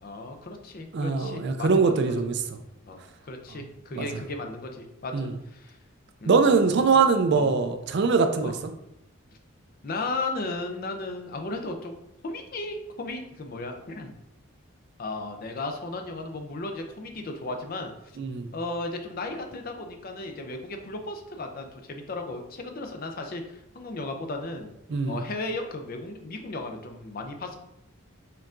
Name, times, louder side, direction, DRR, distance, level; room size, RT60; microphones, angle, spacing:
voice 1, 0.0-2.1 2.8-3.0 3.3-5.8 6.2-6.6 7.3-7.5 8.4-8.6 9.8-12.0 12.2-14.1 15.0-17.9 18.5-24.7 25.1-27.6, left 2 dB, 45° left, 5 dB, 0.5 m, -35 dB
voice 2, 0.9-2.4 4.0-4.1 5.1-5.3 6.3-8.6 18.2-18.5 24.9-25.2, right 4 dB, 55° right, 7 dB, 0.4 m, -22 dB
4.5 x 3.5 x 2.5 m, 0.85 s
head